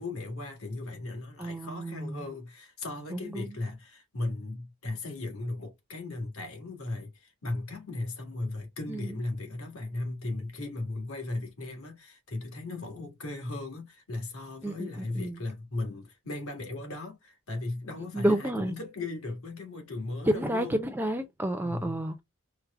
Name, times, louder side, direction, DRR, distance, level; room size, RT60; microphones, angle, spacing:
voice 1, 0.0-20.8 21.6-22.0, left 2 dB, 75° left, 1.8 m, -37 dB
voice 2, 1.4-2.3 3.1-3.5 8.9-9.2 14.6-15.4 18.1-18.8 20.3-22.2, right 1 dB, 10° right, 0.4 m, -30 dB
4.6 x 2.1 x 3.5 m
head